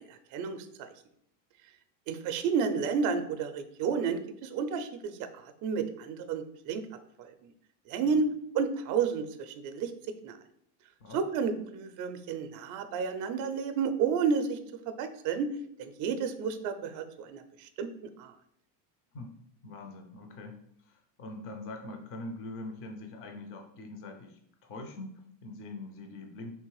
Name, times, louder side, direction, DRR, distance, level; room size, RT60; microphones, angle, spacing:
voice 1, 0.1-0.9 2.1-5.1 5.4-6.9 7.2-7.3 7.9-8.3 8.5-9.9 10.2-10.4 11.1-14.6 14.9-15.5 15.8-18.3, right 6 dB, 40° right, 9 dB, 0.5 m, -31 dB
voice 2, 19.6-20.6 20.8-26.5, left 2 dB, 30° left, 5 dB, 0.5 m, -43 dB
3.3 x 2.9 x 4.6 m, 0.71 s
supercardioid pair, 140°, 47 cm